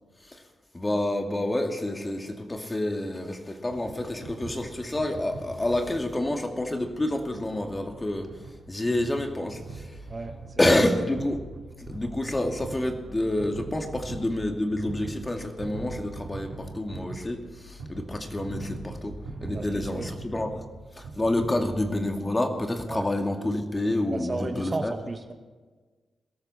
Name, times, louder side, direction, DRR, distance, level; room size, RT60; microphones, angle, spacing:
voice 1, 0.7-8.3 8.7-10.0 10.6-11.4 11.8-20.6 21.0-24.9, left 1 dB, 25° left, 4 dB, 2.3 m, -28 dB
sound 1, 3.7-22.1, right 3 dB, 85° right, 3.2 m, -41 dB
voice 2, 19.5-20.1 21.5-21.6 22.9-23.0 24.1-25.3, right 3 dB, 40° right, 4 dB, 2.0 m, -34 dB
22.0 x 13.0 x 4.3 m, 1.3 s
supercardioid pair, 45°, 0 cm